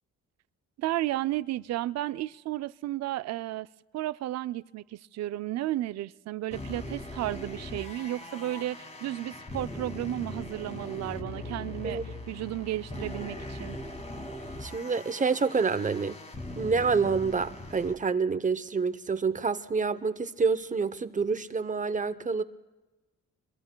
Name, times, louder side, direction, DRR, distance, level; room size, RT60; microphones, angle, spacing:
voice 1, 0.8-3.7 3.9-13.8, right 15 dB, 60° right, 0.4 m, -33 dB
sound 1, 6.5-17.9, left 1 dB, 20° left, 2.2 m, -40 dB
voice 2, 11.8-12.2 14.6-16.2 16.6-22.4, right 5 dB, 25° right, 0.7 m, -28 dB
28.5 x 22.5 x 2.2 m
cardioid pair, 90°, 30 cm